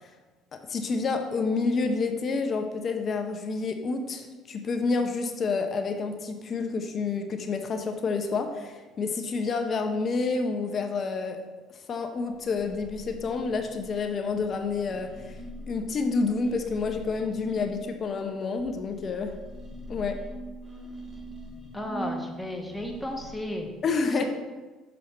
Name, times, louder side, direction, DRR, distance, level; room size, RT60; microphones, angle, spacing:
voice 1, 0.7-11.4 11.9-15.4 15.7-19.3 19.9-20.2 23.8-24.2, left 4 dB, 45° left, 5 dB, 0.8 m, -29 dB
sound 1, 12.1-18.2 18.6-23.4, equal, 25° right, 1.8 m, -43 dB
voice 2, 21.7-23.7 24.1-24.2, left 1 dB, 5° left, 1 dB, 1.4 m, -34 dB
6.5 x 5.5 x 4.3 m, 1.3 s
supercardioid pair, 75°, 0 cm